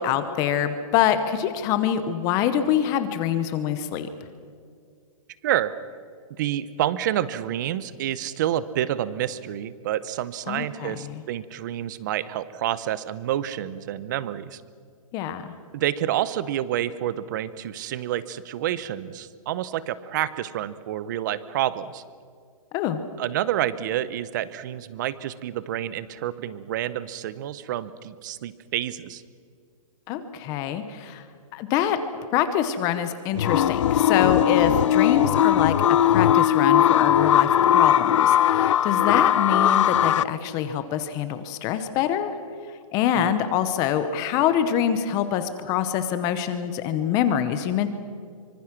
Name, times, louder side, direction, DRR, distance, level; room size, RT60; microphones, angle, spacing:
voice 1, 0.0-4.1 10.5-11.1 15.1-15.5 22.7-23.0 30.1-31.2 31.5-32.0 32.3-35.7 36.0-42.3 42.9-47.9, left 9 dB, 20° left, 10 dB, 0.9 m, -25 dB
voice 2, 5.4-5.7 6.4-14.6 15.7-22.0 23.2-29.2 39.1-39.3 43.1-43.4, right 12 dB, 30° right, 17 dB, 0.8 m, -28 dB
sound 1, 33.4-40.2, left 10 dB, 55° left, 0.6 m, -19 dB
25.0 x 24.5 x 6.0 m, 2.2 s
hypercardioid pair, 170°, 19 cm